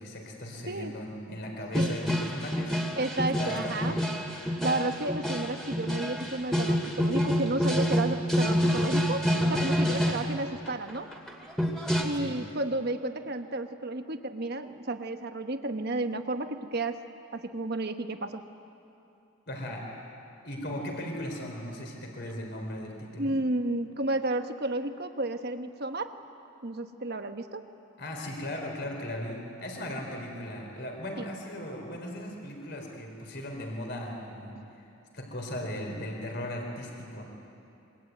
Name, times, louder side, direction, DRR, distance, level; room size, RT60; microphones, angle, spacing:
voice 1, 0.0-2.7 3.4-4.0 12.1-12.4 19.5-19.9 20.4-23.4 28.0-34.9 35.1-37.2, left 1 dB, 50° left, 1 dB, 4.1 m, -37 dB
sound 1, 1.7-10.2 10.7-12.0, equal, ahead, 2.5 m, -27 dB
voice 2, 2.9-4.0 4.6-11.1 12.0-17.0 17.3-18.4 23.2-26.1 26.6-27.6 31.2-31.3 34.5-34.7, right 2 dB, 50° right, 7 dB, 1.3 m, -32 dB
25.5 x 24.0 x 9.4 m, 2.8 s
head